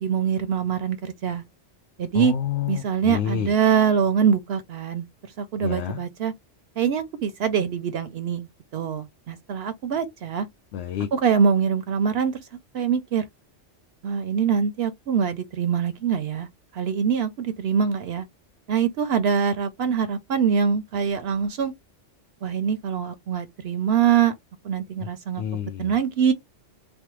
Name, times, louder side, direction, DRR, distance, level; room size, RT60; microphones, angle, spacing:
voice 1, 0.0-1.4 2.0-2.3 2.7-5.1 5.4-6.3 6.8-8.5 8.7-10.5 11.1-12.5 12.7-13.2 14.0-16.5 16.7-18.2 18.7-21.7 22.4-24.4 24.6-25.4 25.8-26.3, right 7 dB, 65° right, 0.7 m, -24 dB
voice 2, 2.1-3.5 5.6-6.0 10.7-11.1 25.4-25.9, left 8 dB, 75° left, 0.8 m, -28 dB
3.3 x 2.0 x 2.9 m
omnidirectional pair, 1.2 m